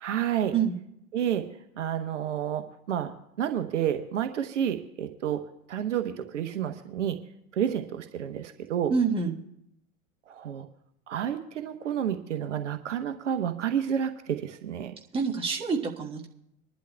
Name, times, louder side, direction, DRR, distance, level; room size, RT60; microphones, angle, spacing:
voice 1, 0.0-0.5 1.1-1.4 1.8-3.1 3.4-5.4 5.7-7.2 7.5-8.9 10.3-10.7 11.1-14.9, right 9 dB, 60° right, 8 dB, 1.0 m, -30 dB
voice 2, 8.9-9.4 15.1-16.3, right 5 dB, 15° right, -1 dB, 1.5 m, -27 dB
25.5 x 11.5 x 2.3 m, 0.78 s
figure-of-eight pair, 95°, 42 cm